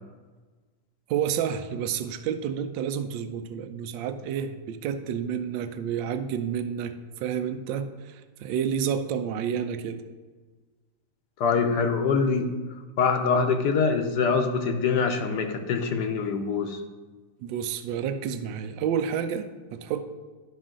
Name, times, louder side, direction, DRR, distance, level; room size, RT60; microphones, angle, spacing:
voice 1, 1.1-10.0 17.4-20.0, right 8 dB, 80° right, 9 dB, 1.3 m, -30 dB
voice 2, 11.4-12.5 13.0-16.8, left 5 dB, 70° left, 5 dB, 1.2 m, -24 dB
10.5 x 5.6 x 3.7 m, 1.3 s
omnidirectional pair, 2.0 m